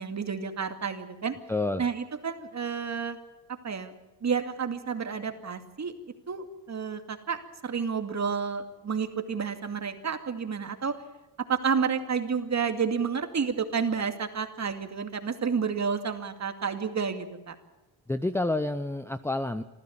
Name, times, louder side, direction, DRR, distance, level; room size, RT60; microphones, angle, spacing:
voice 1, 0.0-1.4 1.8-3.2 3.6-3.9 4.2-5.9 6.3-10.9 11.5-17.6, right 6 dB, 35° right, 7 dB, 2.4 m, -30 dB
voice 2, 1.5-1.8 18.1-19.6, left 2 dB, 5° left, 9 dB, 0.7 m, -28 dB
26.5 x 14.5 x 8.7 m, 1.0 s
cardioid pair, 115°, 50 cm